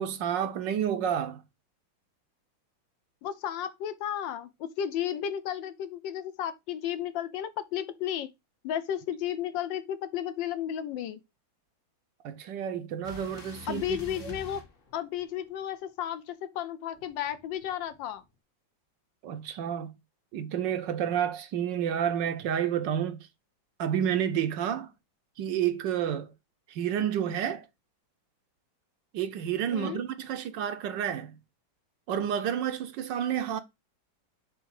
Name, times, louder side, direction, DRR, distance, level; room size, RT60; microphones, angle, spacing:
voice 1, 0.0-1.4 12.2-14.4 19.2-19.9 20.3-23.2 23.8-24.9 25.4-26.3 26.7-27.7 29.1-31.4 32.1-33.6, right 9 dB, 75° right, 1.2 m, -30 dB
voice 2, 3.2-8.3 8.6-11.2 13.7-14.6 14.9-18.2 29.7-30.0, left 10 dB, 70° left, 1.3 m, -33 dB
sound 1, 13.0-15.5 16.9-18.2, left 2 dB, 35° left, 1.0 m, -47 dB
7.0 x 3.5 x 4.7 m
omnidirectional pair, 2.2 m